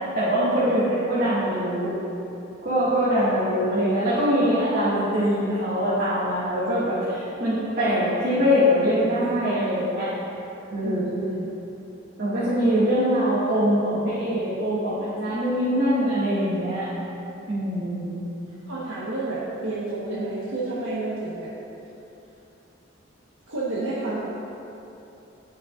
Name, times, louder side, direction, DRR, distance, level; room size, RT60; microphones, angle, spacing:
voice 1, 0.0-1.9 2.6-10.1 10.7-11.3 12.2-16.9 17.5-18.2, equal, 50° right, -12 dB, 2.2 m, -23 dB
voice 2, 10.8-11.4 18.6-21.5 23.5-24.2, right 2 dB, 85° right, -9 dB, 1.4 m, -30 dB
18.5 x 6.4 x 2.6 m, 2.9 s
head